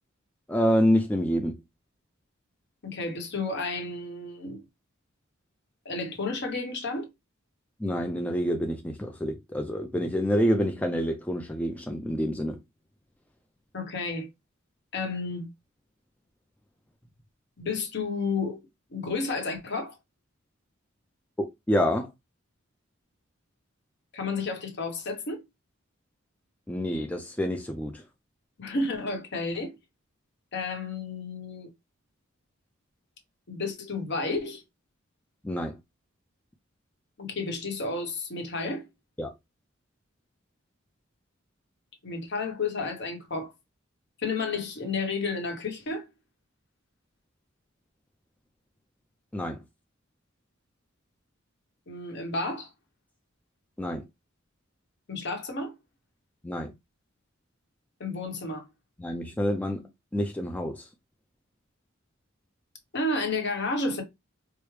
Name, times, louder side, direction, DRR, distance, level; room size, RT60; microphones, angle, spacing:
voice 1, 0.5-1.6 7.8-12.6 21.4-22.1 26.7-28.0 35.4-35.8 39.2-39.3 49.3-49.6 53.8-54.0 56.4-56.7 59.0-60.9, equal, 5° left, 0.4 m, -27 dB
voice 2, 2.8-4.6 5.8-7.1 13.7-14.3 14.9-15.5 17.6-18.6 18.9-20.0 24.1-25.4 28.6-29.7 30.5-31.7 33.5-34.6 37.2-38.9 42.0-43.5 44.2-46.1 51.9-52.7 55.1-55.7 58.0-58.7 62.9-64.0, left 3 dB, 55° left, 1.0 m, -31 dB
4.7 x 2.0 x 3.2 m
head